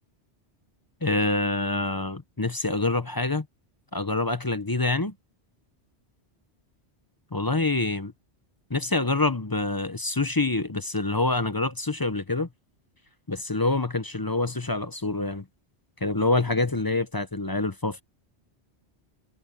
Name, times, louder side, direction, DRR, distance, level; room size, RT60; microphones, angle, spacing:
voice 1, 1.0-3.5 3.9-5.1 7.3-8.1 8.7-12.5 13.3-15.4 16.0-18.0, left 2 dB, 25° left, 0.7 m, -26 dB
omnidirectional pair, 1.1 m